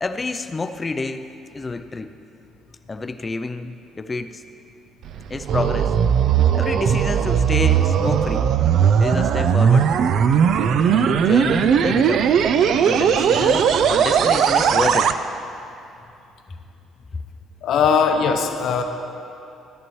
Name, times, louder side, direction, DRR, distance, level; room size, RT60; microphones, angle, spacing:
voice 1, 0.0-2.1 2.9-4.4 5.3-6.0 6.5-8.5 9.0-9.9 10.8-12.3 12.8-15.2, left 3 dB, 20° left, 9 dB, 0.4 m, -28 dB
sound 1, 5.0-15.1, right 7 dB, 55° right, 0.4 m, -18 dB
voice 2, 17.6-18.8, left 6 dB, 60° left, 5 dB, 0.8 m, -19 dB
14.0 x 10.5 x 3.1 m, 2.7 s
cardioid pair, 150°, 0 cm